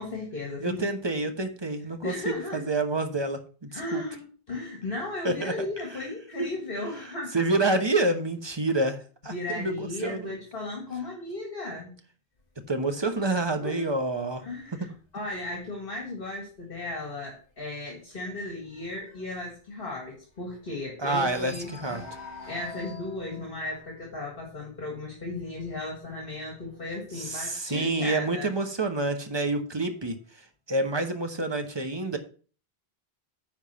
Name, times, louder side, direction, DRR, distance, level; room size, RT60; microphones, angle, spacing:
voice 1, 0.0-0.9 1.2-1.3 2.0-2.7 3.7-7.4 9.2-11.9 13.6-13.9 14.4-22.1 22.5-28.5, left 2 dB, 60° left, 0 dB, 2.1 m, -36 dB
voice 2, 0.6-4.0 5.2-5.5 6.4-6.5 7.3-9.0 9.2-10.3 12.7-14.4 21.0-22.0 27.2-30.2 30.7-32.2, right 2 dB, 25° right, 7 dB, 1.1 m, -28 dB
sound 1, 12.4-16.0 16.4-16.7 17.0-17.1 17.5-20.8 21.1-27.7 28.5-29.5, left 2 dB, 40° left, 1.8 m, -49 dB
10.0 x 3.6 x 6.9 m, 0.40 s
omnidirectional pair, 1.0 m